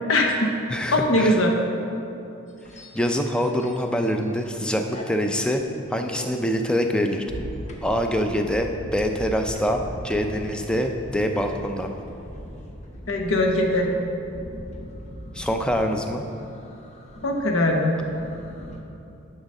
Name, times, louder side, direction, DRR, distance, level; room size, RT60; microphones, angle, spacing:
voice 1, 0.1-0.5 0.9-1.6 13.1-13.9 17.2-18.0, left 1 dB, 75° left, 2 dB, 1.0 m, -21 dB
voice 2, 0.7-1.4 2.9-5.6 5.9-7.2 7.8-11.9 15.3-16.3, equal, 5° left, 4 dB, 0.4 m, -25 dB
sound 1, 2.5-4.5 4.8-18.8, equal, 35° left, 0.8 m, -40 dB
11.0 x 4.1 x 5.4 m, 2.8 s
head